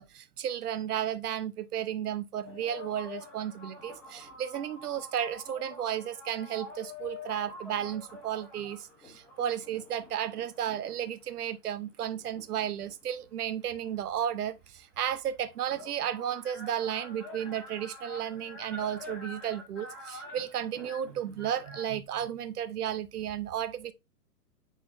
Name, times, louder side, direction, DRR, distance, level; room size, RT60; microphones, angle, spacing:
voice 1, 0.0-23.9, right 10 dB, 75° right, 0.8 m, -33 dB
sound 1, 2.4-11.2 11.9-13.6 14.8-14.9 15.0-21.8, left 2 dB, 5° left, 0.8 m, -47 dB
9.1 x 4.0 x 2.6 m
hypercardioid pair, 170°, 47 cm